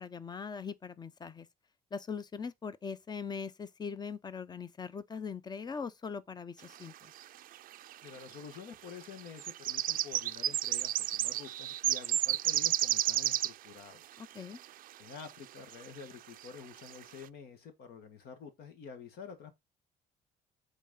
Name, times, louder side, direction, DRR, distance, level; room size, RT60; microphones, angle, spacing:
voice 1, 0.0-1.5 1.9-7.1 14.2-14.6, left 6 dB, 25° left, 0.7 m, -41 dB
sound 1, 7.2-7.3 7.5-8.2 9.0-13.7 14.6-14.7 15.2-15.3 15.7-16.0 16.4-16.5 16.8-17.0, right 13 dB, 55° right, 0.4 m, -31 dB
voice 2, 8.0-14.0 15.0-19.5, left 6 dB, 70° left, 1.6 m, -49 dB
8.0 x 4.2 x 3.8 m
cardioid pair, 110°, 17 cm